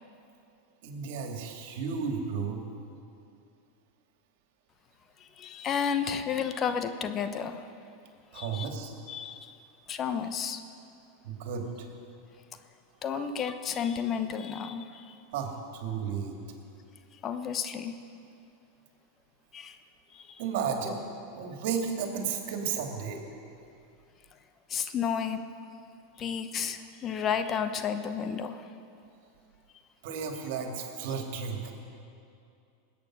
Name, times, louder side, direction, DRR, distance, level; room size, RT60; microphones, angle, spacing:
voice 1, 0.8-2.6 8.3-8.9 11.2-11.9 13.0-13.3 15.3-16.3 20.4-21.0 21.4-23.2 30.0-31.7, right 6 dB, 65° right, 3 dB, 2.3 m, -33 dB
voice 2, 5.4-7.6 8.3-8.7 9.1-9.5 9.9-10.6 13.0-15.1 17.2-17.9 19.5-19.8 20.1-20.4 20.9-21.0 24.7-25.4 26.2-28.6, left 7 dB, 35° left, 9 dB, 0.9 m, -32 dB
20.5 x 8.6 x 6.1 m, 2.5 s
hypercardioid pair, 95°, 0 cm